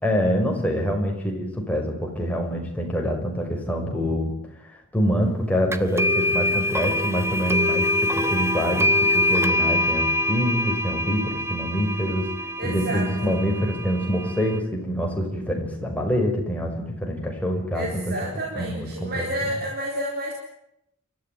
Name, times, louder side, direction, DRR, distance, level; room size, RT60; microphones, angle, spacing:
voice 1, 0.0-4.3 4.7-12.3 12.6-18.1 18.6-19.5, equal, 5° left, 1 dB, 5.5 m, -26 dB
sound 1, 5.7-14.6, left 1 dB, 10° right, 1.3 m, -24 dB
voice 2, 12.6-13.4 17.7-20.3, right 1 dB, 45° right, 0 dB, 4.1 m, -30 dB
29.0 x 14.0 x 9.4 m, 0.79 s
head